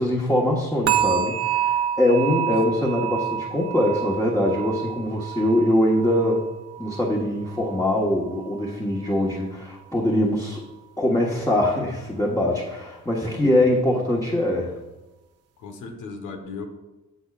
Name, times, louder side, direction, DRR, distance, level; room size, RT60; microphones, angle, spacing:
voice 1, 0.0-6.4 6.8-10.6 11.0-14.7, left 1 dB, 10° left, -3 dB, 1.4 m, -23 dB
sound 1, 0.9-7.9 8.2-8.6 9.1-9.2, right 10 dB, 55° right, 0.8 m, -28 dB
voice 2, 15.6-16.7, left 4 dB, 85° left, 5 dB, 1.3 m, -37 dB
15.0 x 5.5 x 2.5 m, 1.1 s
cardioid pair, 90°, 30 cm